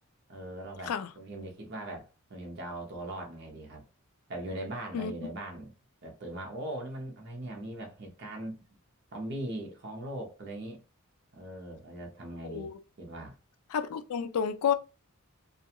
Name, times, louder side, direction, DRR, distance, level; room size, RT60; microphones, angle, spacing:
voice 1, 0.3-3.8 4.3-5.7 6.0-8.6 9.1-10.8 11.3-13.4, right 1 dB, 50° right, 0.7 m, -40 dB
voice 2, 13.7-14.7, left 7 dB, 80° left, 0.4 m, -30 dB
2.4 x 2.2 x 2.8 m
head